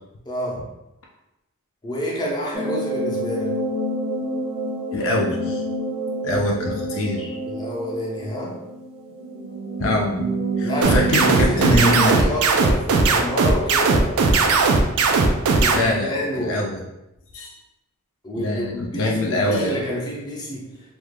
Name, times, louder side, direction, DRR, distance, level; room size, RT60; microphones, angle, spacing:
voice 1, 0.3-0.6 1.8-3.5 7.5-8.6 10.6-14.2 15.6-16.6 18.2-20.6, equal, 20° left, -4 dB, 0.6 m, -28 dB
sound 1, 2.5-11.9, right 1 dB, 25° right, 0.6 m, -28 dB
voice 2, 4.9-5.6 6.2-7.4 9.8-10.3 10.6-12.2 15.7-16.8 17.3-17.5 18.3-19.8, left 1 dB, 60° left, -1 dB, 0.4 m, -24 dB
sound 2, 10.8-15.8, right 4 dB, 70° right, 0.4 m, -17 dB
2.5 x 2.3 x 3.2 m, 0.92 s
head